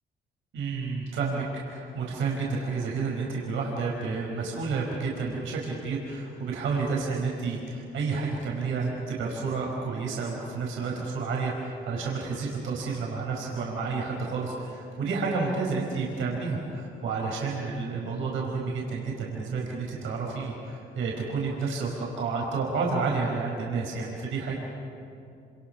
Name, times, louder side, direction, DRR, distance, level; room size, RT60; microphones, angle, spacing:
voice 1, 0.5-24.6, right 4 dB, 85° right, -2 dB, 4.9 m, -30 dB
28.0 x 27.0 x 5.9 m, 2.6 s
cardioid pair, 90°, 20 cm